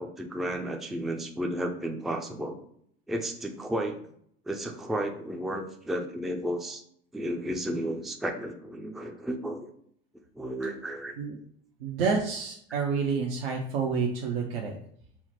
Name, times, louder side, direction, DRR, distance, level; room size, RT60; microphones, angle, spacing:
voice 1, 0.0-2.6 3.1-3.9 4.5-6.8 7.1-9.7 10.4-11.2, right 1 dB, ahead, 3 dB, 0.4 m, -33 dB
voice 2, 11.8-14.8, right 5 dB, 70° right, 0 dB, 0.6 m, -29 dB
5.7 x 2.1 x 2.9 m, 0.68 s
hypercardioid pair, 75°, 30 cm